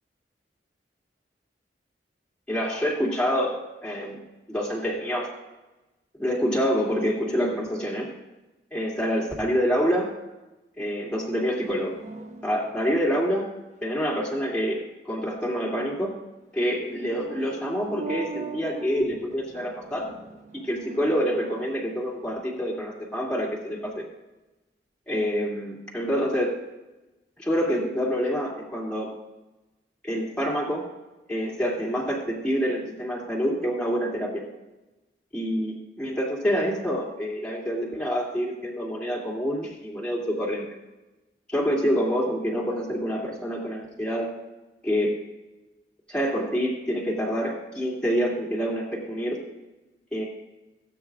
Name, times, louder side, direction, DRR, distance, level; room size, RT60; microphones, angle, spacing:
voice 1, 2.5-4.2 4.5-5.3 6.2-8.1 8.7-10.1 10.8-12.0 12.4-13.5 13.8-16.2 16.5-20.1 20.5-24.0 25.1-26.6 27.4-29.2 30.0-30.9 31.3-34.5 35.3-40.7 41.5-44.3 44.8-45.2 46.1-49.4 50.1-50.2, equal, 5° left, -5 dB, 2.6 m, -27 dB
sound 1, 11.6-13.0 16.9-22.4, right 4 dB, 45° right, 0.8 m, -41 dB
18.0 x 8.9 x 2.5 m, 1.0 s
head